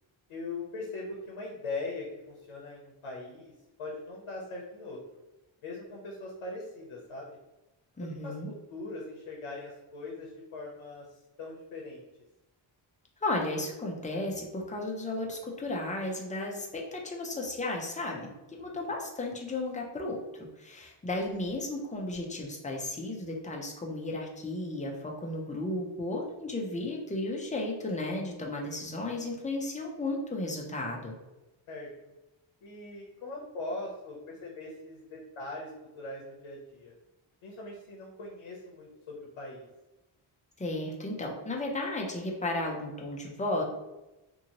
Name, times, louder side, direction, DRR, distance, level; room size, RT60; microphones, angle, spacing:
voice 1, 0.3-3.5 3.8-5.0 5.6-7.4 8.0-11.1 11.4-12.0 18.6-18.8 31.7-31.9 32.6-36.9 37.4-39.7, left 2 dB, 80° left, -2 dB, 0.7 m, -41 dB
voice 2, 8.0-8.5 13.2-31.1 40.6-43.6, left 2 dB, 15° left, -1 dB, 0.4 m, -34 dB
2.6 x 2.6 x 2.8 m, 1.0 s
wide cardioid pair, 125°, 48 cm